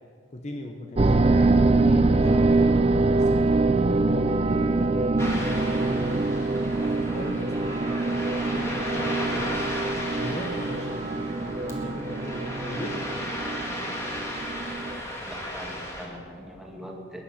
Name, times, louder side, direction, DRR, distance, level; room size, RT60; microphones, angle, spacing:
voice 1, 0.3-3.5 3.9-6.3 6.5-9.5 10.2-13.1, left 1 dB, 35° left, 3 dB, 0.8 m, -39 dB
sound 1, 1.0-15.0, right 2 dB, 30° right, 0.4 m, -24 dB
Ocean, 5.2-16.1, left 1 dB, 15° left, 1.9 m, -35 dB
voice 2, 15.3-17.2, equal, ahead, -1 dB, 2.0 m, -41 dB
20.5 x 10.0 x 5.8 m, 2.5 s
head